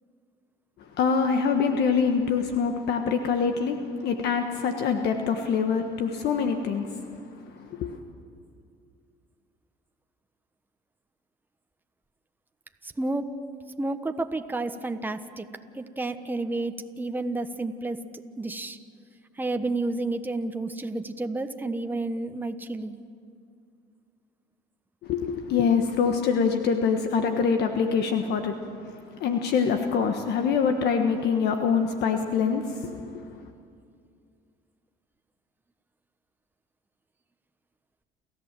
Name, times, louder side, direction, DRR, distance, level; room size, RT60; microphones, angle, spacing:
voice 1, 1.0-7.1 7.5-8.0 25.0-28.5 28.8-33.4, left 6 dB, 70° left, 5 dB, 1.4 m, -25 dB
voice 2, 12.8-13.4 13.8-15.5 15.7-18.0 18.4-18.8 19.4-23.0, right 2 dB, 10° right, 7 dB, 1.1 m, -30 dB
29.0 x 14.0 x 7.6 m, 2.3 s
supercardioid pair, 90°, 18 cm